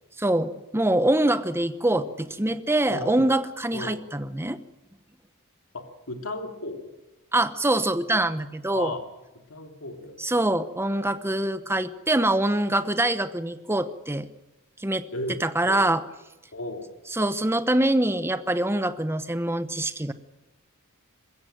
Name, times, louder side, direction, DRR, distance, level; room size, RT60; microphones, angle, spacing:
voice 1, 0.2-4.6 7.3-8.9 10.2-14.3 14.8-15.0 15.4-16.0 17.1-20.1, right 1 dB, 10° right, 12 dB, 1.0 m, -24 dB
voice 2, 5.7-6.9 8.7-9.0 9.5-10.2 10.4-10.5 15.1-15.4 15.7-15.8 16.5-16.9, left 2 dB, 70° left, 4 dB, 3.0 m, -34 dB
21.0 x 16.0 x 8.9 m, 1.0 s
head